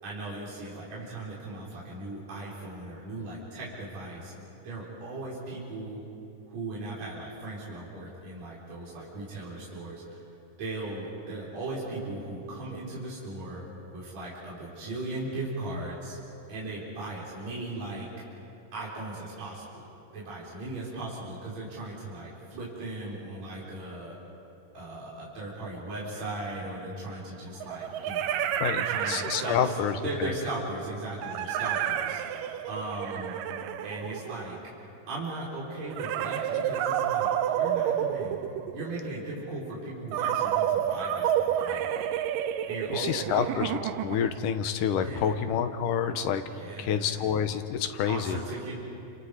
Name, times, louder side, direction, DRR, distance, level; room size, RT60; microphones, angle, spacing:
voice 1, 0.0-4.3 4.6-6.0 6.5-10.2 10.6-13.7 13.9-16.2 16.5-18.1 18.7-24.2 24.7-28.4 28.8-33.4 33.8-34.6 35.1-38.4 38.7-42.0 42.7-43.5 45.0-45.4 46.5-47.2 48.0-48.7, right 2 dB, 50° right, -7 dB, 5.2 m, -38 dB
sound 1, 26.1-26.2 27.6-30.0 31.2-34.7 35.9-38.9 40.1-44.4, right 10 dB, 85° right, 2.4 m, -30 dB
voice 2, 28.6-29.9 30.2-30.3 42.9-46.4 46.8-48.4, left 8 dB, 75° left, 9 dB, 2.4 m, -28 dB
29.5 x 27.5 x 4.9 m, 2.8 s
omnidirectional pair, 3.9 m